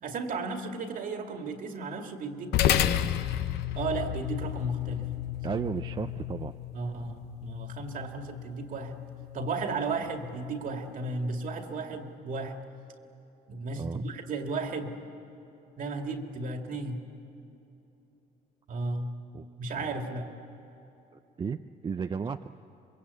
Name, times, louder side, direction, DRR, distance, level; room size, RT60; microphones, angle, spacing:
voice 1, 0.0-3.1 3.7-5.1 5.5-5.6 6.7-9.0 9.3-12.6 13.5-15.0 15.8-17.0 18.7-19.1 19.6-20.3, right 3 dB, 55° right, 4 dB, 2.3 m, -34 dB
sound 1, 2.5-11.2, left 12 dB, 75° left, 0.9 m, -32 dB
voice 2, 5.4-6.5 13.8-14.0 19.3-19.5 19.8-19.9 21.4-22.5, right 6 dB, 30° right, 8 dB, 0.5 m, -34 dB
25.5 x 22.5 x 8.4 m, 3.0 s
cardioid pair, 110°, 17 cm